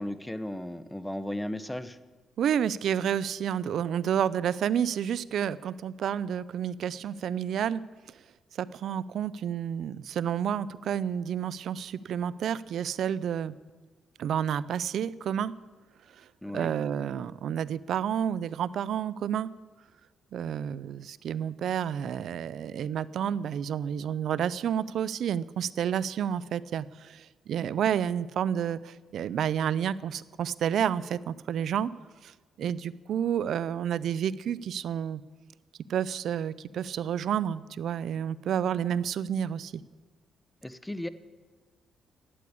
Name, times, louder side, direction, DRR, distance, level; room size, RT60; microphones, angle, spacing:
voice 1, 0.0-2.0 16.4-16.7 40.6-41.1, left 1 dB, 10° left, 13 dB, 0.7 m, -35 dB
voice 2, 2.4-7.8 8.6-13.5 14.2-15.5 16.5-19.5 20.3-31.9 32.2-32.3 32.6-35.2 35.9-39.7, right 9 dB, 70° right, 18 dB, 0.4 m, -30 dB
12.0 x 8.5 x 8.6 m, 1.3 s
cardioid pair, 90°, 0 cm